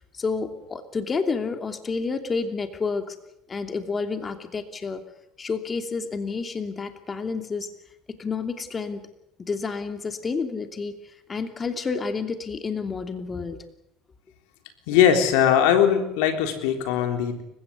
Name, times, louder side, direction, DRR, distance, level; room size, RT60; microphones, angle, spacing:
voice 1, 0.1-3.1 3.5-5.0 5.4-7.7 8.1-9.0 9.4-10.9 11.3-13.6, left 4 dB, 30° left, 7 dB, 2.9 m, -29 dB
voice 2, 14.9-17.4, left 9 dB, 80° left, 6 dB, 3.6 m, -20 dB
29.5 x 16.5 x 8.4 m, 0.83 s
supercardioid pair, 85°, 0 cm